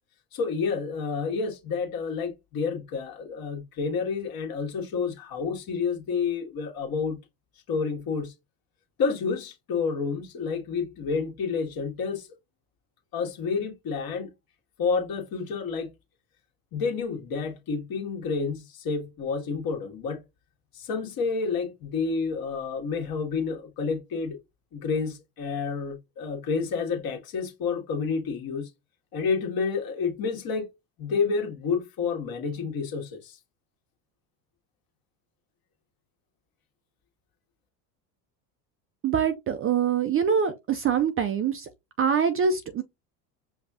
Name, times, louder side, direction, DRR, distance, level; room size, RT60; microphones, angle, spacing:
voice 1, 0.3-7.2 7.7-8.3 9.0-12.3 13.1-14.3 14.8-15.9 16.7-20.2 20.7-24.4 24.7-28.7 29.1-30.7 31.0-33.4, left 5 dB, 45° left, 1.5 m, -29 dB
voice 2, 39.0-41.7 42.0-42.8, right 7 dB, 30° right, 0.5 m, -24 dB
5.3 x 2.4 x 2.7 m
supercardioid pair, 95°, 48 cm